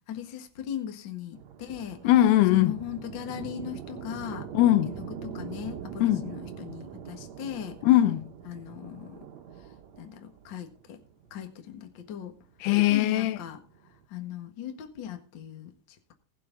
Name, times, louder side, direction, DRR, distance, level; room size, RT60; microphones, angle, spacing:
voice 1, 0.1-2.0 2.5-4.5 5.0-7.7 8.4-9.2 9.6-9.7 10.0-11.0 11.3-12.3 12.9-13.6 14.1-15.7, left 9 dB, 50° left, 1.4 m, -38 dB
sound 1, 1.3-14.0, right 8 dB, 65° right, 1.8 m, -43 dB
voice 2, 2.0-2.7 4.5-4.9 6.0-6.2 7.8-8.2 12.6-13.4, left 14 dB, 90° left, 2.9 m, -20 dB
19.5 x 6.9 x 4.0 m
omnidirectional pair, 4.6 m